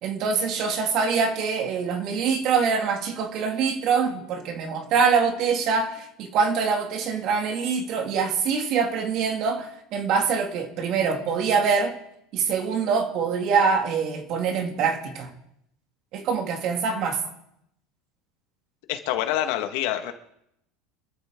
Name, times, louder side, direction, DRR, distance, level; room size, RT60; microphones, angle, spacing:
voice 1, 0.0-11.9 12.3-15.3 16.1-17.2, right 5 dB, 45° right, 2.5 m, -24 dB
voice 2, 18.9-20.1, left 12 dB, 65° left, 1.8 m, -26 dB
26.0 x 13.5 x 3.9 m
supercardioid pair, 150°, 0 cm